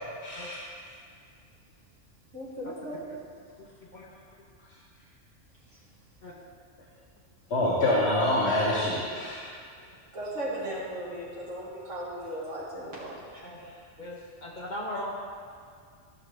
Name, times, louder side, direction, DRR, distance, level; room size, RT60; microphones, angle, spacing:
voice 1, 0.2-0.6 7.5-9.5, left 1 dB, 65° left, -6 dB, 1.4 m, -26 dB
voice 2, 2.3-3.0 5.7-5.8 10.1-13.4, right 1 dB, 85° right, -8 dB, 2.2 m, -37 dB
voice 3, 3.6-4.1 6.2-6.3 13.4-13.7 14.0-15.1, left 1 dB, 45° left, -2 dB, 1.0 m, -39 dB
13.0 x 6.4 x 3.3 m, 2.1 s
omnidirectional pair, 1.2 m